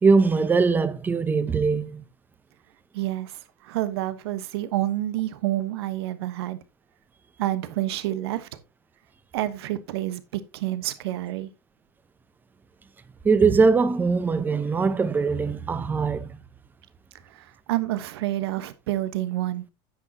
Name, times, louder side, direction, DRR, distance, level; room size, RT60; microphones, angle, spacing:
voice 1, 0.0-2.0 13.2-16.4, right 4 dB, 15° right, 0.8 m, -21 dB
voice 2, 2.9-6.6 7.4-8.5 9.3-10.2 10.5-11.5 17.3-19.6, right 14 dB, 85° right, 1.2 m, -28 dB
10.0 x 8.9 x 2.9 m
supercardioid pair, 145°, 13 cm